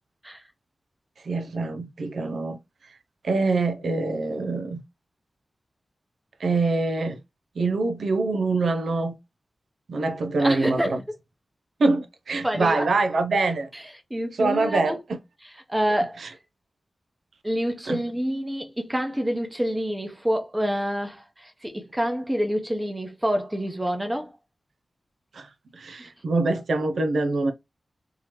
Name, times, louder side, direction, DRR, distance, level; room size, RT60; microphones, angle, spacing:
voice 1, 1.2-2.6 3.2-4.8 6.4-7.2 7.6-9.2 9.9-11.0 11.8-13.7 14.3-15.0 16.2-16.3 17.9-18.0 25.3-25.5 25.7-27.5, right 3 dB, 80° right, 0.5 m, -24 dB
voice 2, 10.4-10.9 12.4-12.9 13.7-13.8 14.1-15.0 15.7-16.2 17.4-24.3 26.0-26.1, equal, 10° right, 0.8 m, -27 dB
3.6 x 2.9 x 3.0 m
wide cardioid pair, 120°, 0 cm